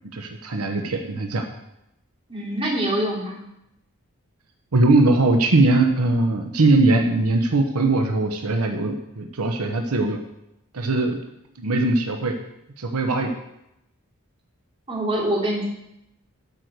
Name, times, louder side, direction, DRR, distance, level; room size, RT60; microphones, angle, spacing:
voice 1, 0.1-1.4 4.7-10.2 10.7-11.2 11.6-12.3 12.8-13.3, right 2 dB, 90° right, 4 dB, 1.0 m, -20 dB
voice 2, 2.3-3.4 14.9-15.6, right 1 dB, 25° right, -5 dB, 3.0 m, -24 dB
12.0 x 4.7 x 6.6 m, 0.84 s
head